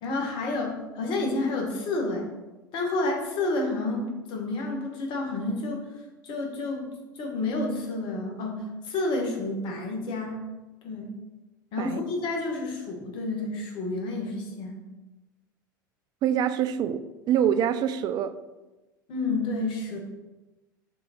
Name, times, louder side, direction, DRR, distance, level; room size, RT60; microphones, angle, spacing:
voice 1, 0.0-2.3 2.7-5.9 6.2-6.9 7.1-10.4 10.8-11.1 11.7-14.8 19.1-20.0, left 2 dB, 45° left, 1 dB, 1.6 m, -30 dB
voice 2, 16.2-18.4, right 9 dB, 40° right, 12 dB, 0.4 m, -25 dB
6.5 x 3.8 x 4.3 m, 1.1 s
figure-of-eight pair, 80°, 11 cm